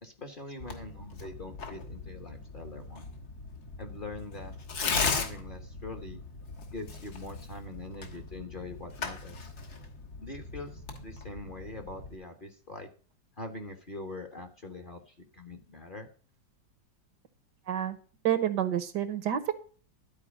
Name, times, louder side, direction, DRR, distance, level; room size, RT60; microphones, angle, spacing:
voice 1, 0.0-3.1 3.8-4.5 5.1-6.2 6.7-9.5 10.2-12.9 13.4-16.1, left 2 dB, 30° left, 4 dB, 1.1 m, -43 dB
Tearing, 0.6-12.2, left 4 dB, 60° left, 1.9 m, -38 dB
voice 2, 17.7-18.0 18.2-19.5, right 10 dB, 70° right, 12 dB, 1.4 m, -28 dB
12.0 x 4.7 x 7.1 m, 0.40 s
omnidirectional pair, 2.0 m